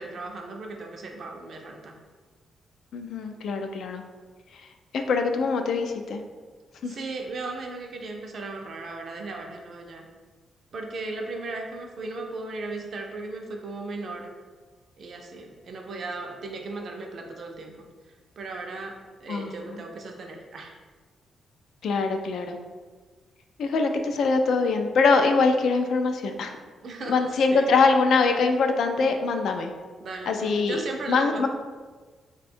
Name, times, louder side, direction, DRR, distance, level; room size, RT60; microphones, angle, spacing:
voice 1, 0.0-2.0 6.8-10.1 10.7-14.4 15.0-17.9 18.4-20.8 26.8-27.7 30.0-31.5, right 3 dB, 45° right, 2 dB, 0.5 m, -36 dB
voice 2, 2.9-4.0 4.9-6.2 6.8-7.0 19.3-19.9 21.8-22.6 23.6-26.6 27.1-29.7 30.3-30.8 31.1-31.5, left 4 dB, 65° left, 5 dB, 0.3 m, -23 dB
3.5 x 2.2 x 4.2 m, 1.4 s
wide cardioid pair, 165°, 0 cm